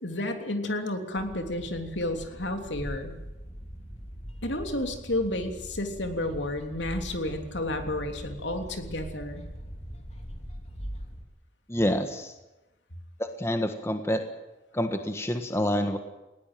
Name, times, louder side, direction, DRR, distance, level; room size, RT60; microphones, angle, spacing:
voice 1, 0.0-3.2 4.4-9.5, left 1 dB, 70° left, 5 dB, 3.2 m, -31 dB
sound 1, 1.2-11.2, equal, 35° left, 2.9 m, -41 dB
voice 2, 11.7-12.3 13.2-14.2 14.7-16.0, equal, 15° left, 6 dB, 1.5 m, -27 dB
19.5 x 18.0 x 9.2 m, 1.0 s
head